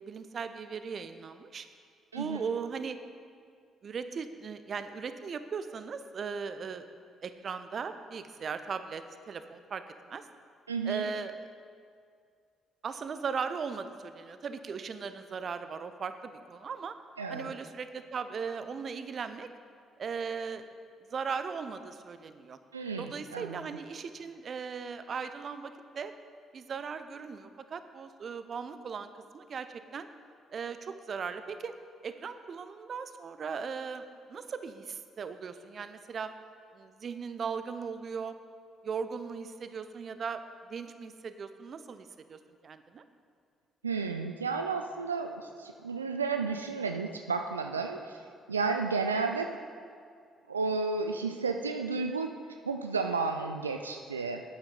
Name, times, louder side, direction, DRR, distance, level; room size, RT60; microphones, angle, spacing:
voice 1, 0.0-1.7 2.1-3.0 3.8-6.9 7.2-10.2 10.8-11.5 12.8-16.9 17.3-19.5 20.0-20.6 21.1-22.6 23.0-26.1 26.5-30.1 30.5-31.7 32.0-36.3 36.7-38.4 38.8-40.4 40.7-43.0, right 5 dB, 45° right, 10 dB, 0.6 m, -38 dB
voice 2, 10.7-11.1 17.2-17.5 22.7-23.6 43.8-48.2 48.5-49.5 50.5-52.3 52.7-54.4, right 4 dB, 85° right, 5 dB, 0.3 m, -32 dB
12.5 x 8.6 x 4.0 m, 2.2 s
figure-of-eight pair, 45°, 0 cm